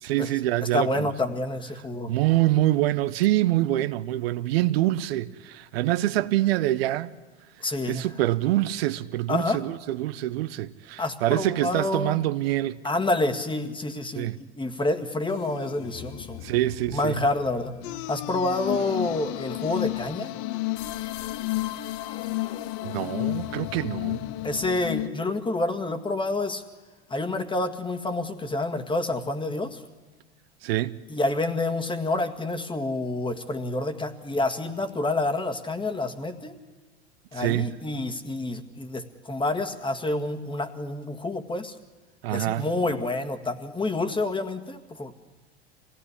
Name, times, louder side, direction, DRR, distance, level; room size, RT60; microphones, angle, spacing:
voice 1, 0.0-1.1 2.1-7.1 7.8-12.8 14.2-14.4 16.4-17.2 22.8-24.2 30.6-31.0 37.3-37.7 42.2-42.7, right 15 dB, 65° right, 0.8 m, -25 dB
voice 2, 0.6-2.1 7.6-8.1 9.3-9.6 11.0-12.3 12.8-16.4 16.9-17.7 18.1-20.3 24.4-26.6 27.1-29.8 31.1-36.5 37.3-41.8 42.3-45.2, left 2 dB, 15° left, 2.0 m, -28 dB
sound 1, 15.3-25.1, left 17 dB, 50° left, 0.9 m, -33 dB
26.0 x 17.5 x 9.9 m
figure-of-eight pair, 80°, 33 cm